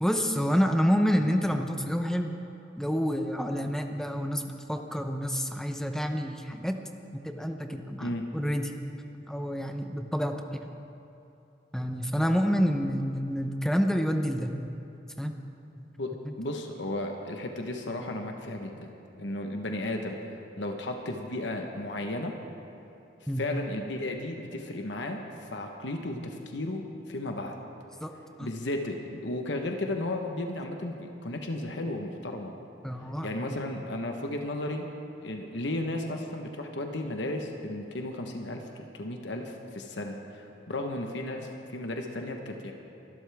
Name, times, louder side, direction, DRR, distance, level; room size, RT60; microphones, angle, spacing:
voice 1, 0.0-2.3 2.8-6.8 7.1-8.8 9.3-10.4 11.7-14.5 15.2-15.4 15.8-15.9 23.3-23.4 28.0-28.1 28.4-28.5 32.8-33.3, equal, 5° left, 5 dB, 0.7 m, -28 dB
voice 2, 16.0-18.9 19.2-20.2 20.6-22.3 23.4-25.2 25.5-26.8 27.1-27.6 28.4-32.5 33.2-34.8 35.2-42.7, left 1 dB, 75° left, 3 dB, 1.1 m, -34 dB
24.5 x 12.5 x 3.5 m, 2.9 s
head